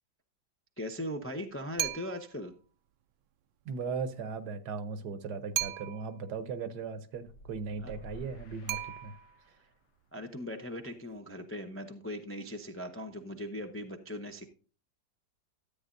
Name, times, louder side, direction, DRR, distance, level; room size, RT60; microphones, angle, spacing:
voice 1, 0.8-2.5 7.8-7.9 10.1-14.4, equal, 20° left, 0.3 m, -39 dB
sound 1, 1.8-2.4 5.5-6.2 8.7-9.5, right 13 dB, 85° right, 1.3 m, -36 dB
voice 2, 3.7-9.1, right 5 dB, 70° right, 1.3 m, -38 dB
sound 2, 7.2-9.8, left 1 dB, 75° left, 1.6 m, -52 dB
13.0 x 8.5 x 2.6 m
omnidirectional pair, 1.9 m